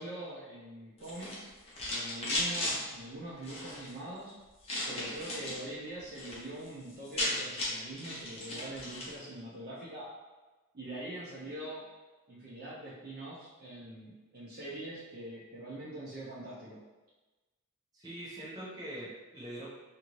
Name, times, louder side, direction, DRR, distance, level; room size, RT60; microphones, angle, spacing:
voice 1, 0.0-1.5 1.9-4.3 4.9-10.1 10.7-11.8 12.3-16.8, right 1 dB, 45° right, -8 dB, 0.5 m, -43 dB
sound 1, 1.0-2.8 3.4-3.9 4.6-5.6 6.0-6.4 6.7-6.8 6.9-9.1, left 1 dB, 25° left, 0.6 m, -35 dB
voice 2, 17.9-19.7, right 1 dB, 15° right, -8 dB, 0.8 m, -43 dB
2.6 x 2.5 x 3.0 m, 1.2 s
head